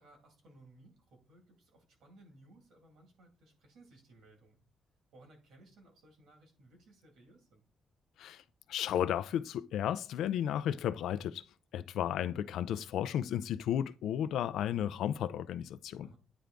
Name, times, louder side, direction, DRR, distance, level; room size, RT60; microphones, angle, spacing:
voice 1, 0.0-4.7 5.1-7.6 16.0-16.2, right 2 dB, 75° right, 2.3 m, -60 dB
voice 2, 8.7-11.4 11.7-16.1, left 10 dB, 85° left, 0.4 m, -33 dB
9.3 x 3.4 x 3.8 m
cardioid pair, 165°, 0 cm